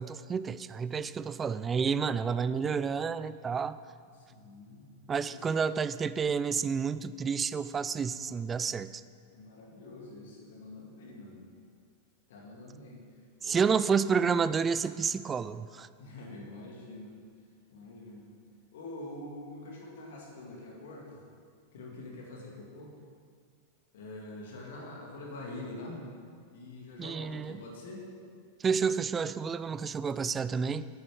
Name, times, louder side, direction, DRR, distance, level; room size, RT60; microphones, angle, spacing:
voice 1, 0.0-3.8 5.1-9.0 13.4-15.9 27.0-27.6 28.6-30.9, right 6 dB, 20° right, 15 dB, 0.3 m, -30 dB
voice 2, 4.2-4.9 5.3-5.7 9.3-11.4 12.3-13.0 13.4-13.8 16.0-17.1 17.7-18.3 18.7-21.2 21.7-23.0 23.9-26.0 26.5-28.1, left 2 dB, 55° left, -1 dB, 2.2 m, -45 dB
9.6 x 9.4 x 5.0 m, 2.1 s
figure-of-eight pair, 90°, 0 cm